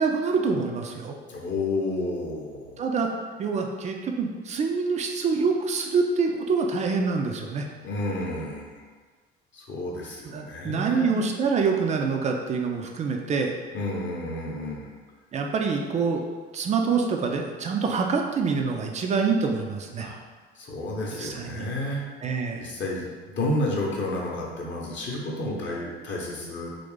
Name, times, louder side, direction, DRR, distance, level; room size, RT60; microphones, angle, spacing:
voice 1, 0.0-1.2 2.8-3.1 3.4-7.7 10.3-13.5 15.3-16.2 16.5-20.1 21.1-21.7 22.2-22.7, right 5 dB, 25° right, 3 dB, 0.3 m, -26 dB
voice 2, 1.3-2.8 7.8-8.8 9.5-11.2 13.7-14.9 20.0-20.2 20.6-22.0 22.6-23.0 23.3-26.7, left 1 dB, 35° left, -2 dB, 0.8 m, -31 dB
3.1 x 2.6 x 3.2 m, 1.4 s
figure-of-eight pair, 55°, 31 cm